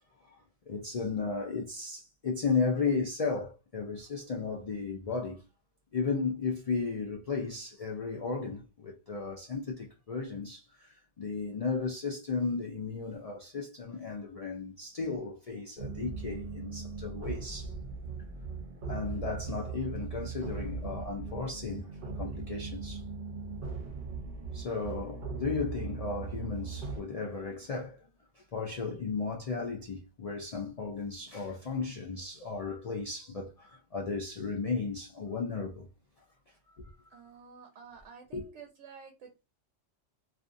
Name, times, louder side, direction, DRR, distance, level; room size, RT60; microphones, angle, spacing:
voice 1, 0.7-5.4 5.9-17.7 18.8-21.9 22.2-23.0 24.5-28.1 28.4-35.9 36.8-37.2 38.3-38.4, left 4 dB, 75° left, 0.3 m, -35 dB
sound 1, 15.8-27.0, right 4 dB, 50° right, 0.7 m, -39 dB
voice 2, 37.1-39.5, right 6 dB, 85° right, 1.0 m, -51 dB
2.5 x 2.4 x 2.5 m
omnidirectional pair, 1.3 m